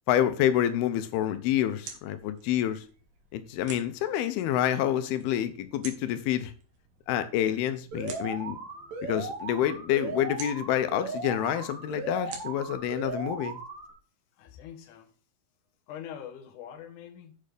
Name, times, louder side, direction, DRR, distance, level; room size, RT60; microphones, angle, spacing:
voice 1, 0.1-2.8 3.3-6.5 7.1-8.6 9.0-13.6, left 11 dB, 90° left, 2.8 m, -28 dB
sound 1, 1.2-14.0, right 6 dB, 75° right, 3.6 m, -50 dB
Alarm, 7.9-13.9, right 3 dB, 55° right, 3.2 m, -37 dB
voice 2, 14.4-15.1 15.9-17.4, left 9 dB, 65° left, 2.6 m, -43 dB
8.8 x 6.5 x 5.1 m
omnidirectional pair, 4.3 m